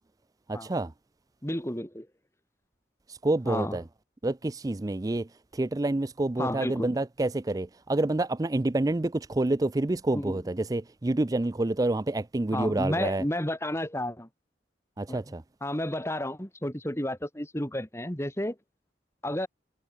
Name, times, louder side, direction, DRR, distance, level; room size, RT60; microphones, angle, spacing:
voice 1, 0.5-0.9 3.1-3.8 4.2-5.3 5.5-13.2 15.0-15.4, right 2 dB, 20° right, 0.4 m, -28 dB
voice 2, 1.4-2.1 3.4-3.8 6.4-6.9 10.1-10.4 12.5-14.3 15.1-15.2 15.6-18.6 19.2-19.5, left 1 dB, 15° left, 3.6 m, -31 dB
head